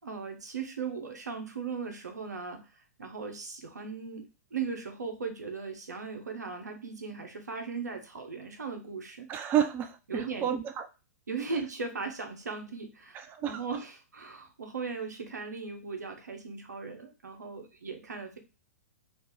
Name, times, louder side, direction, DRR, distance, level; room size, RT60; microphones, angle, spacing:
voice 1, 0.0-9.3 10.1-10.5 11.3-18.4, right 5 dB, 80° right, 5 dB, 0.8 m, -38 dB
voice 2, 9.3-10.9 13.1-13.6, right 9 dB, 20° right, 8 dB, 0.3 m, -30 dB
2.8 x 2.6 x 3.5 m, 0.30 s
hypercardioid pair, 110°, 9 cm